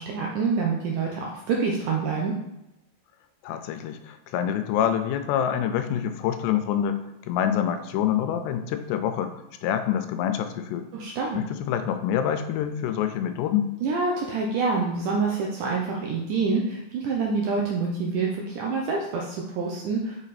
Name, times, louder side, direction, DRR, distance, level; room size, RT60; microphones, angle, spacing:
voice 1, 0.0-2.3 10.9-11.4 13.8-20.3, right 4 dB, 85° right, -1 dB, 1.8 m, -27 dB
voice 2, 3.4-7.0 7.3-9.3 9.6-10.9 11.3-13.7, left 9 dB, 90° left, 9 dB, 2.7 m, -26 dB
6.5 x 5.0 x 4.1 m, 0.89 s
omnidirectional pair, 4.7 m